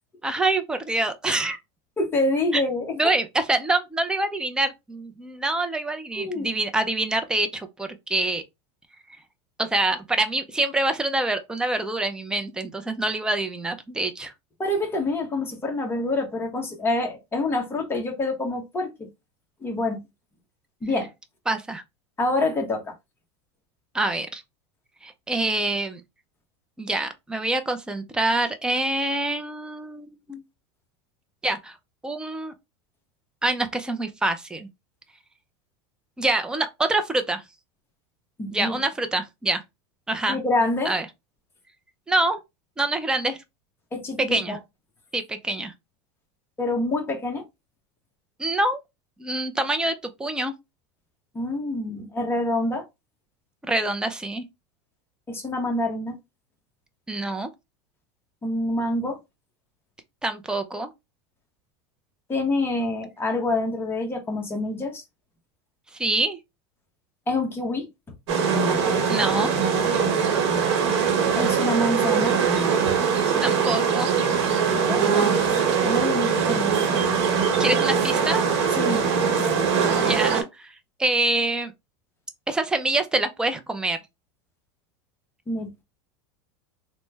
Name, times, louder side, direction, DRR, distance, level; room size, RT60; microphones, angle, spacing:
voice 1, 0.2-1.6 2.5-2.6 2.9-8.4 9.1-9.2 9.6-14.3 21.5-21.8 23.9-24.4 25.0-26.0 26.8-30.4 31.4-31.7 32.0-32.5 33.4-34.7 36.2-37.4 38.5-39.6 40.1-40.4 40.9-41.1 42.1-42.4 42.8-43.4 44.3-44.6 45.1-45.7 48.4-48.8 49.2-50.5 53.6-54.4 57.1-57.5 60.2-60.9 66.0-66.4 69.1-69.5 73.4-74.1 77.6-78.5 80.0-80.7 81.0-81.7 82.5-84.0, right 2 dB, 5° right, 0.4 m, -25 dB
voice 2, 2.0-2.9 6.2-6.5 14.6-19.1 19.6-20.0 20.8-21.1 22.2-22.9 38.4-38.8 40.3-40.9 43.9-44.6 46.6-47.4 51.3-52.8 55.3-56.2 58.4-59.2 62.3-65.0 67.3-67.9 71.3-72.4 74.9-75.5 75.8-76.9 78.7-79.1 85.5-85.8, left 2 dB, 15° left, 1.0 m, -26 dB
sound 1, 68.3-80.4, right 6 dB, 75° right, 1.1 m, -22 dB
3.1 x 2.1 x 3.2 m
supercardioid pair, 130°, 14 cm